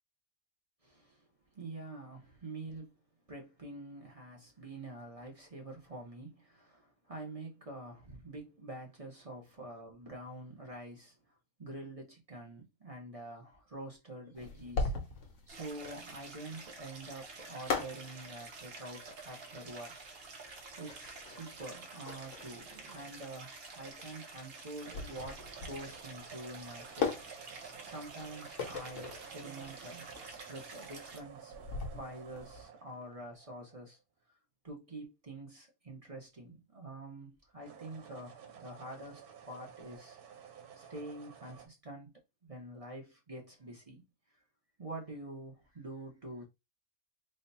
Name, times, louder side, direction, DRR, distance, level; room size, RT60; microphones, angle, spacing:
voice 1, 0.8-1.3 1.5-2.9 3.3-11.2 11.6-14.9 15.5-19.9 20.8-27.6 27.8-30.1 30.5-31.5 32.0-34.0 34.6-39.2 39.5-40.2 40.7-42.1 42.4-44.0 44.8-46.4, right 1 dB, 30° right, 0.9 m, -46 dB
sound 1, 14.3-32.6, left 4 dB, 60° left, 1.1 m, -40 dB
Stream, 15.5-31.2, right 3 dB, 45° right, 1.0 m, -49 dB
sound 2, 24.8-34.0 37.5-41.7, right 8 dB, 85° right, 1.3 m, -53 dB
3.3 x 2.3 x 4.1 m
omnidirectional pair, 1.6 m